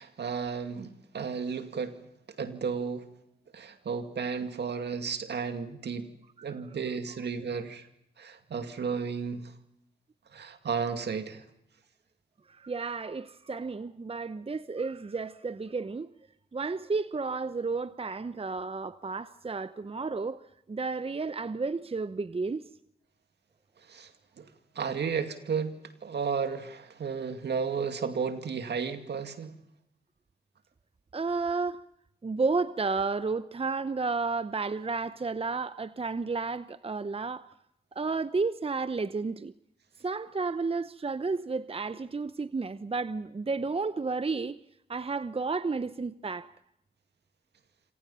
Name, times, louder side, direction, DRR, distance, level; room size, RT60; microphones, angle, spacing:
voice 1, 0.0-2.0 2.4-3.1 3.5-6.1 6.4-7.9 8.2-9.5 10.3-11.4 23.9-24.1 24.4-24.5 24.8-29.6, right 6 dB, 70° right, 2.3 m, -33 dB
voice 2, 12.6-16.1 16.5-20.4 20.7-22.6 31.1-31.8 32.2-37.5 37.9-39.5 40.0-44.6 44.9-46.5, right 4 dB, 30° right, 0.8 m, -32 dB
27.0 x 27.0 x 5.6 m
supercardioid pair, 40°, 18 cm